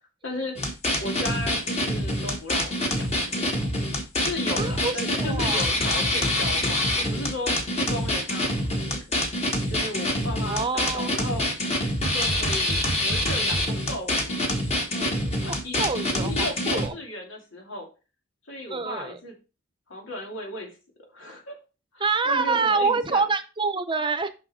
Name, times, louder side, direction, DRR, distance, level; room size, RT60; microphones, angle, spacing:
voice 1, 0.2-0.6 1.0-3.9 4.2-9.0 9.7-11.4 12.0-15.9 16.2-17.9 18.5-19.3 19.9-20.8 21.1-21.6 21.9-23.2, left 1 dB, 90° left, 2 dB, 2.5 m, -35 dB
sound 1, 0.6-16.9, left 1 dB, 35° left, 1.7 m, -26 dB
voice 2, 4.6-5.6 10.4-11.1 15.5-16.9 18.7-19.2 22.0-24.3, right 4 dB, 25° right, 10 dB, 0.7 m, -26 dB
7.5 x 5.8 x 4.2 m, 0.32 s
head